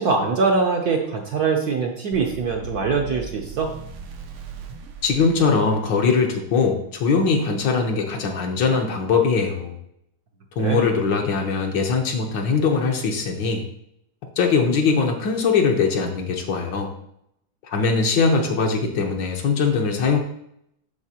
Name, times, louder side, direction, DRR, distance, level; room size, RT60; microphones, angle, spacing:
voice 1, 0.0-3.7 10.6-10.9, right 4 dB, 60° right, 1 dB, 1.1 m, -23 dB
sound 1, 2.1-6.2, right 3 dB, 80° right, 1.6 m, -38 dB
voice 2, 5.0-9.8 10.6-13.6 14.4-16.9 17.7-20.2, left 4 dB, 65° left, 3 dB, 1.5 m, -21 dB
12.0 x 4.3 x 2.8 m, 0.75 s
omnidirectional pair, 2.3 m